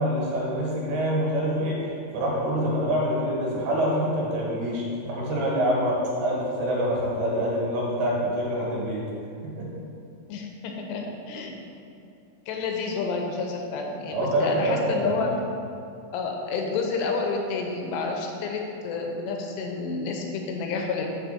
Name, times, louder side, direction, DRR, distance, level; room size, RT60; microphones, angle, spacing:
voice 1, 0.0-9.0 9.6-9.8 14.1-15.3, equal, 65° right, -4 dB, 3.2 m, -26 dB
voice 2, 10.3-11.6 12.5-15.3 16.1-21.1, left 4 dB, 75° left, 2 dB, 2.7 m, -29 dB
6.6 x 4.9 x 6.5 m, 2.5 s
omnidirectional pair, 5.3 m